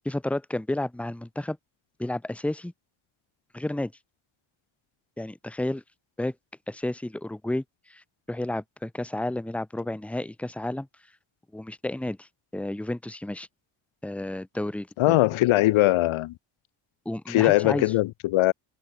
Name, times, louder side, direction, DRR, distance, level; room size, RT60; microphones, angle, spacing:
voice 1, 0.0-1.6 2.0-2.7 3.5-3.9 5.2-5.8 6.2-6.3 6.7-7.6 7.9-8.0 8.3-10.9 11.5-12.3 12.5-13.5 14.0-15.2 17.0-17.9, left 1 dB, 5° left, 0.9 m, -31 dB
voice 2, 15.0-16.3 17.3-18.5, left 17 dB, 85° left, 0.7 m, -21 dB
wide cardioid pair, 160°, 48 cm